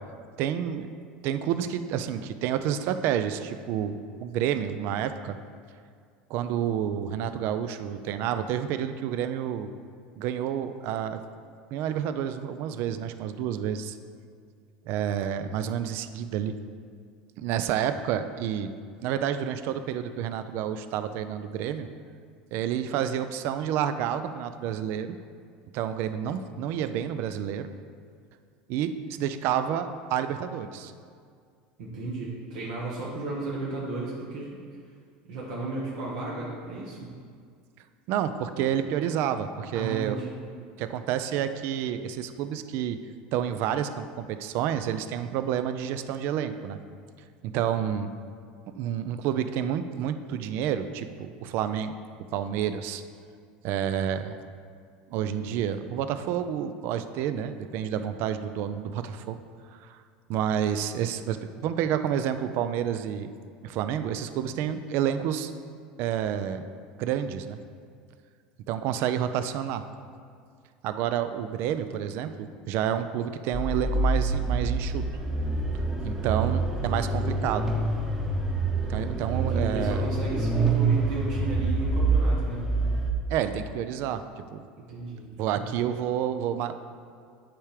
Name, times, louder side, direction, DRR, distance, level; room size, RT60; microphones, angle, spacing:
voice 1, 0.4-0.9 1.2-5.4 6.3-9.7 10.2-11.2 11.7-14.0 14.9-16.5 17.4-18.7 19.0-21.9 22.5-25.2 25.7-27.7 28.7-28.9 29.2-30.9 38.1-40.2 40.8-43.0 43.3-46.8 47.4-48.1 48.8-51.9 52.3-53.0 53.6-54.4 55.1-59.4 59.7-60.0 60.3-63.3 63.6-65.5 66.0-66.6 67.0-67.6 68.7-69.8 70.8-75.0 76.0-77.7 78.9-80.0 83.3-84.2 84.5-84.6 85.4-86.7, right 9 dB, 60° right, 10 dB, 0.4 m, -29 dB
voice 2, 31.8-34.6 35.3-37.1 39.7-40.3 79.3-82.6 84.9-85.2 85.5-85.7, right 2 dB, 75° right, -6 dB, 1.4 m, -34 dB
sound 1, 73.5-83.1, right 3 dB, 10° right, 0.9 m, -26 dB
8.7 x 3.5 x 4.9 m, 2.1 s
supercardioid pair, 100°, 4 cm